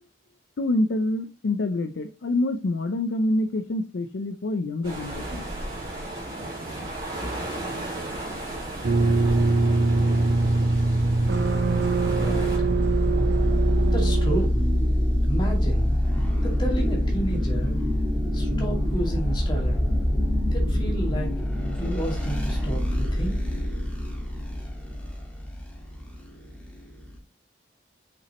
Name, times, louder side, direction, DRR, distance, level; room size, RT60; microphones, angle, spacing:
voice 1, 0.6-5.5, left 2 dB, 70° left, 0.5 m, -26 dB
sound 1, 4.8-12.6, right 1 dB, 25° right, 3.1 m, -34 dB
sound 2, 8.8-14.5, right 3 dB, 60° right, 0.7 m, -23 dB
sound 3, 10.3-27.2, left 1 dB, 5° left, 1.7 m, -25 dB
voice 2, 12.1-12.7 13.9-14.7 15.2-15.9 16.4-17.8 18.3-19.8 20.5-21.5 21.8-24.0, right 1 dB, 25° left, 2.1 m, -32 dB
6.0 x 5.8 x 2.9 m
head